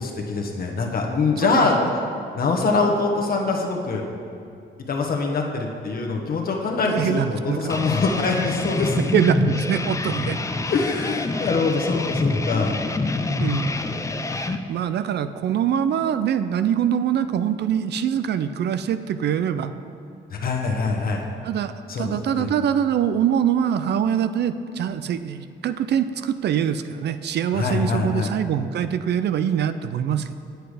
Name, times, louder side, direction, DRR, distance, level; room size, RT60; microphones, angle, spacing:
voice 1, 0.0-1.8 2.3-4.0 4.9-9.1 10.7-12.7 20.3-21.2 21.9-22.5 27.5-28.3, left 4 dB, 50° left, 1 dB, 1.1 m, -24 dB
voice 2, 6.9-7.7 9.1-10.4 13.4-13.7 14.3-19.7 21.4-30.4, right 9 dB, 60° right, 11 dB, 0.4 m, -24 dB
sound 1, 7.7-14.6, left 2 dB, 15° left, 0.5 m, -26 dB
8.1 x 7.9 x 4.9 m, 2.5 s
cardioid pair, 90°, 20 cm